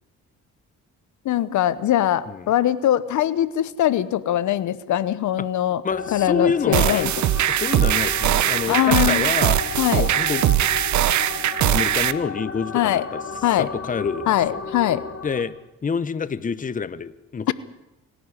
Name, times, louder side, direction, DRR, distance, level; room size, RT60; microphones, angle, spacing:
voice 1, 1.2-5.8 6.1-7.1 8.7-9.3 9.8-10.1 12.7-13.1 13.4-13.7 14.3-15.0 17.5-17.6, left 12 dB, 70° left, 17 dB, 1.0 m, -21 dB
voice 2, 5.8-7.1 7.5-9.6 9.9-10.4 11.6-13.2 13.6-14.6 15.2-15.5 15.8-17.5, left 6 dB, 25° left, 16 dB, 0.9 m, -27 dB
sound 1, 5.9-15.4, left 4 dB, 55° left, 3.1 m, -33 dB
sound 2, 6.7-12.1, right 12 dB, 70° right, 0.9 m, -21 dB
26.0 x 11.5 x 9.8 m, 0.98 s
cardioid pair, 90°, 30 cm